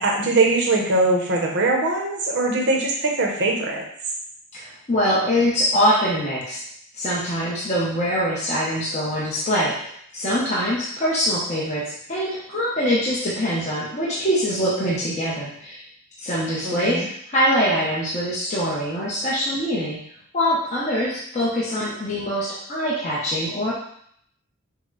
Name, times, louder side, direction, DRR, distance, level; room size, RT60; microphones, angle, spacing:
voice 1, 0.0-3.8 16.6-17.1, right 2 dB, 60° right, 0 dB, 0.9 m, -21 dB
voice 2, 4.5-6.6 7.0-9.7 10.1-15.8 16.2-20.0 20.3-23.7, equal, 35° left, -7 dB, 1.0 m, -23 dB
5.8 x 2.3 x 3.9 m, 0.67 s
head